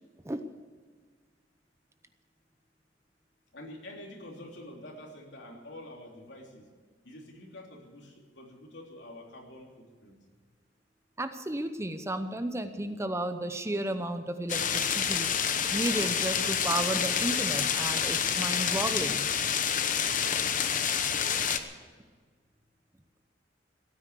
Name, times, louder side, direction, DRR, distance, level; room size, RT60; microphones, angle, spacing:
voice 1, 3.5-6.7 7.0-10.2, left 1 dB, 65° left, 0 dB, 3.3 m, -47 dB
voice 2, 11.2-15.3 15.7-19.3, right 1 dB, 15° right, 9 dB, 0.7 m, -33 dB
sound 1, 14.5-21.6, left 7 dB, 45° left, 1.0 m, -28 dB
17.5 x 9.6 x 8.3 m, 1.5 s
head